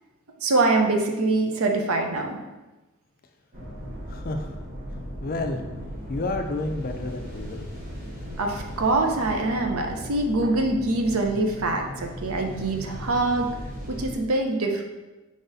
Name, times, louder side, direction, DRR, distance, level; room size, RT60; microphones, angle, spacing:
voice 1, 0.4-2.4 8.4-13.5 13.9-14.8, right 2 dB, 75° right, 3 dB, 0.6 m, -24 dB
sound 1, 3.5-14.2, equal, 40° right, 1.0 m, -37 dB
voice 2, 4.1-4.6 5.2-5.6 6.1-7.7, left 2 dB, 45° left, 5 dB, 0.4 m, -30 dB
4.8 x 3.9 x 2.6 m, 1.1 s
head